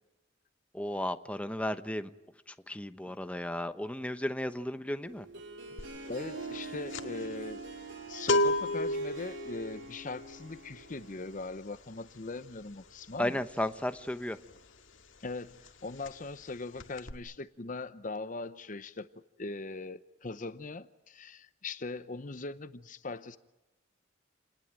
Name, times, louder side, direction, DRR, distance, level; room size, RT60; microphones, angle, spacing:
voice 1, 0.7-2.1 2.5-5.3 13.2-14.4, left 1 dB, 5° left, 1.0 m, -34 dB
Harp, 5.0-11.5, right 3 dB, 65° right, 4.4 m, -45 dB
sound 1, 5.8-6.1 6.3-14.9 15.2-15.4 15.6-16.5 16.8-17.1, left 1 dB, 85° left, 2.0 m, -33 dB
voice 2, 6.1-7.6 8.1-13.4 15.2-23.4, left 3 dB, 40° left, 0.8 m, -40 dB
29.5 x 20.0 x 9.0 m
head